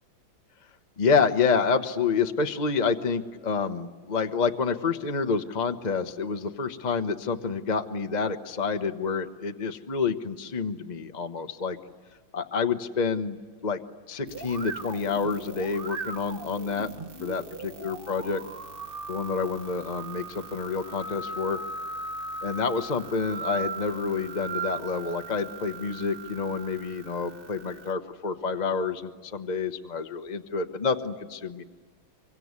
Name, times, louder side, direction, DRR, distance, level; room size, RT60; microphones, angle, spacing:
voice 1, 1.0-11.8 12.3-13.8 14.1-16.9 17.2-18.4 19.1-21.6 22.4-31.6, left 5 dB, 30° left, 7 dB, 0.8 m, -28 dB
sound 1, 14.3-27.9, right 4 dB, 35° right, 1.0 m, -38 dB
25.5 x 24.0 x 9.6 m, 1.5 s
omnidirectional pair, 2.2 m